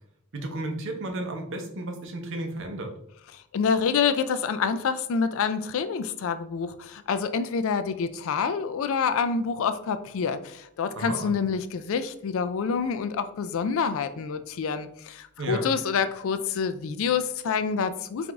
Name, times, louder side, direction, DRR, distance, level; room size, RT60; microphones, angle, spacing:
voice 1, 0.3-2.9 10.9-11.3 15.4-15.6, right 2 dB, 55° right, 4 dB, 0.7 m, -33 dB
voice 2, 3.5-18.3, left 6 dB, 60° left, 11 dB, 0.3 m, -27 dB
4.8 x 2.5 x 3.4 m, 0.73 s
head